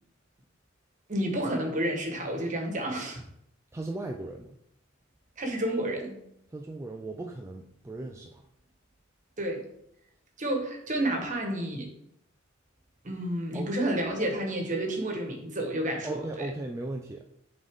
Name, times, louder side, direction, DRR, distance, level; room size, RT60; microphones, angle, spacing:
voice 1, 1.1-3.2 5.4-6.2 9.4-9.6 10.4-11.9 13.0-16.5, right 1 dB, 40° right, 2 dB, 1.3 m, -30 dB
voice 2, 3.7-4.5 6.5-8.4 13.5-13.7 16.0-17.3, right 2 dB, 15° right, 2 dB, 0.4 m, -37 dB
8.1 x 4.0 x 3.6 m, 0.76 s
head